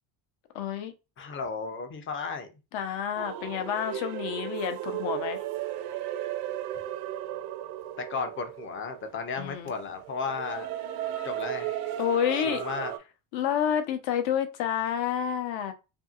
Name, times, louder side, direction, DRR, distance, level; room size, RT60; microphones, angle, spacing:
voice 1, 0.5-0.9 2.7-5.4 9.4-9.7 12.0-12.6 13.3-15.7, left 9 dB, 65° left, 0.7 m, -29 dB
voice 2, 1.2-2.5 8.0-10.7 11.2-11.7 12.3-12.9, left 5 dB, 25° left, 0.4 m, -34 dB
sound 1, 3.1-13.0, right 11 dB, 90° right, 0.6 m, -35 dB
2.7 x 2.6 x 2.4 m
cardioid pair, 130°, 48 cm